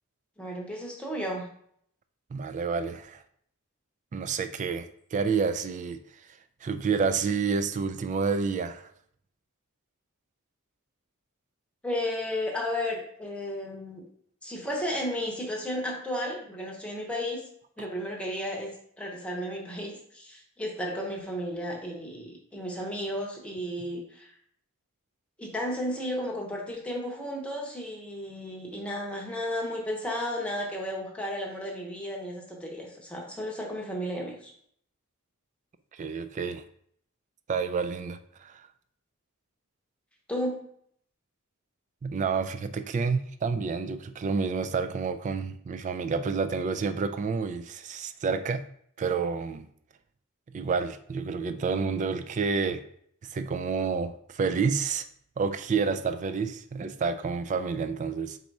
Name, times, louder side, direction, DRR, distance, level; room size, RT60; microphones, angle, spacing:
voice 1, 0.4-1.5 11.8-14.0 14.4-17.4 17.8-18.7 19.0-24.3 25.4-34.5 40.3-40.6, equal, 5° left, -1 dB, 0.9 m, -33 dB
voice 2, 2.3-3.2 4.1-6.0 6.6-8.9 35.9-36.6 37.5-38.6 42.0-48.6 49.0-49.7 50.5-52.8 53.2-55.0 55.4-58.4, right 5 dB, 35° right, 9 dB, 0.3 m, -29 dB
4.1 x 2.7 x 4.6 m, 0.66 s
head